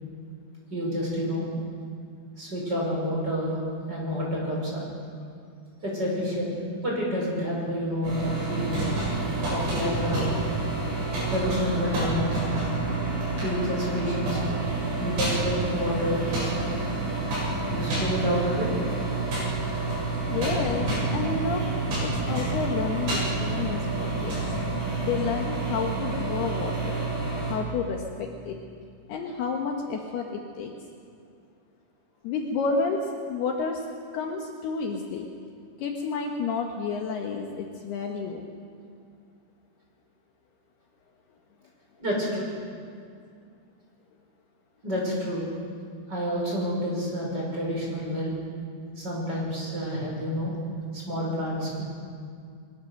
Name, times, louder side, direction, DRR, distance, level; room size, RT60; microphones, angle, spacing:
voice 1, 0.7-1.5 2.4-3.6 3.9-4.8 5.8-6.6 6.8-8.8 9.5-10.4 11.3-12.4 13.4-14.6 15.0-16.8 17.7-18.7 42.0-42.4 44.8-45.4 46.1-48.4 49.0-50.5 50.9-51.8, equal, 20° right, -3 dB, 6.1 m, -29 dB
sound 1, 8.0-27.5, right 2 dB, 65° right, 10.5 m, -28 dB
voice 2, 20.3-21.6 22.0-24.3 25.0-27.1 27.5-28.6 29.1-30.7 32.2-33.0 33.3-33.8 34.1-35.3 35.8-38.5, left 5 dB, 70° left, 1 dB, 3.0 m, -30 dB
22.5 x 20.5 x 6.6 m, 2.3 s
omnidirectional pair, 5.3 m